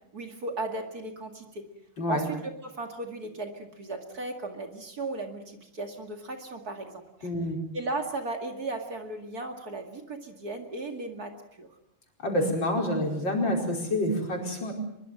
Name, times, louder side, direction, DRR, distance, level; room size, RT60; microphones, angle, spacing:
voice 1, 0.1-1.6 2.1-7.3 7.7-11.7, right 2 dB, 45° right, 5 dB, 2.6 m, -36 dB
voice 2, 7.2-7.6 12.2-14.7, left 1 dB, 60° left, 1 dB, 5.6 m, -27 dB
23.5 x 22.5 x 7.7 m, 0.81 s
omnidirectional pair, 2.4 m